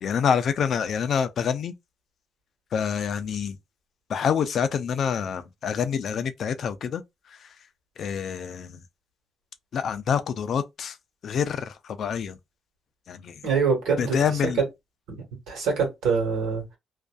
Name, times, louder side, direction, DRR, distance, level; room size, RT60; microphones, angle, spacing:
voice 1, 0.0-1.7 2.7-3.6 4.1-7.0 7.3-7.5 8.0-8.8 9.7-11.0 11.2-12.4 13.1-13.4 14.0-14.6, left 7 dB, 60° left, 0.4 m, -27 dB
voice 2, 13.4-14.2 14.6-14.7 15.5-16.6, right 5 dB, 85° right, 1.3 m, -24 dB
2.5 x 2.3 x 2.2 m
cardioid pair, 90°, 0 cm